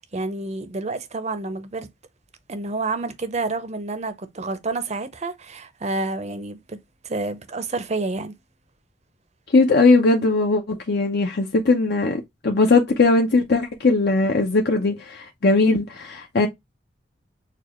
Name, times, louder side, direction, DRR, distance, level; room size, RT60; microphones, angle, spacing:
voice 1, 0.0-1.9 2.5-6.8 7.0-8.3, right 3 dB, 35° right, 0.6 m, -29 dB
voice 2, 9.5-16.5, left 3 dB, 55° left, 0.7 m, -19 dB
6.7 x 2.4 x 3.0 m
head